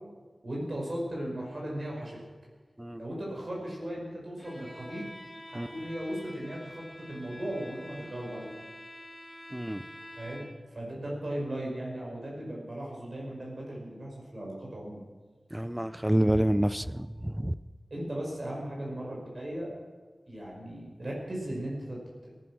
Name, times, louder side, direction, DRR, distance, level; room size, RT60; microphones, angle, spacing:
voice 1, 0.4-2.2 3.0-5.1 5.5-8.5 10.2-10.4 10.7-15.0 17.9-19.7 20.3-22.0, right 1 dB, 50° right, -3 dB, 5.4 m, -37 dB
Bowed string instrument, 4.4-10.7, left 1 dB, 20° left, 3.0 m, -47 dB
voice 2, 9.5-9.9 15.5-17.6, right 1 dB, 10° right, 16 dB, 0.5 m, -28 dB
18.0 x 11.5 x 6.3 m, 1.4 s
wide cardioid pair, 75°, 0 cm